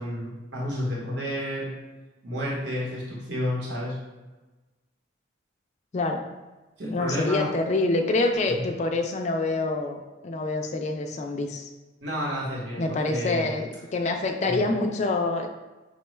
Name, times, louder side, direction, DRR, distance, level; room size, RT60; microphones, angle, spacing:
voice 1, 0.0-1.7 2.2-3.9 6.8-7.5 12.0-13.5 14.4-14.7, equal, 60° right, -5 dB, 1.0 m, -30 dB
voice 2, 6.9-11.7 12.8-15.5, left 2 dB, 35° left, 3 dB, 0.3 m, -26 dB
5.0 x 2.2 x 3.1 m, 1.2 s
head